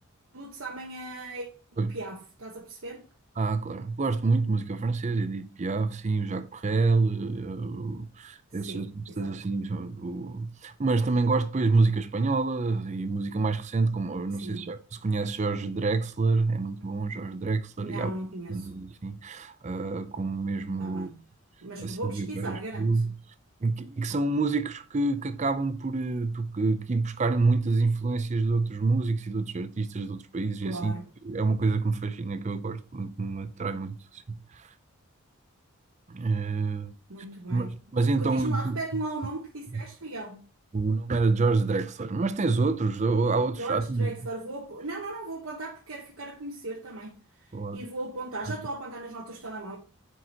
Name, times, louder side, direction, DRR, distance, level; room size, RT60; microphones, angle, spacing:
voice 1, 0.3-1.5 1.9-3.0 8.7-9.3 14.4-14.7 17.8-18.7 20.8-21.2 21.6-22.9 30.6-31.1 37.1-40.4 43.6-47.2 47.7-49.8, right 2 dB, 75° right, 1.1 m, -37 dB
voice 2, 3.4-18.1 18.5-21.1 21.8-23.1 23.6-31.0 31.2-34.7 36.1-36.9 37.5-38.8 39.7-39.8 40.7-44.1 47.5-47.9, right 3 dB, 35° right, 0.5 m, -27 dB
7.6 x 4.7 x 2.8 m
head